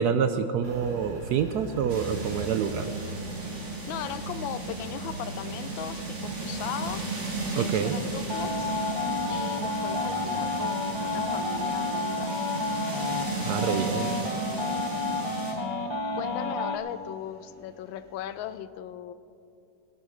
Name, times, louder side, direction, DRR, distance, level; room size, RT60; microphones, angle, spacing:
voice 1, 0.0-2.9 7.5-8.0 13.4-14.1, right 7 dB, 75° right, 9 dB, 0.9 m, -27 dB
Engine, 0.6-18.6, right 2 dB, 55° right, 3.0 m, -45 dB
sound 1, 1.9-15.5, right 3 dB, 40° right, 2.4 m, -35 dB
voice 2, 3.9-7.0 7.5-8.8 9.3-12.4 16.1-19.1, left 11 dB, 80° left, 13 dB, 1.3 m, -38 dB
sound 2, 8.3-16.8, left 3 dB, 25° left, 0.6 m, -30 dB
20.5 x 9.7 x 5.0 m, 2.6 s
omnidirectional pair, 2.1 m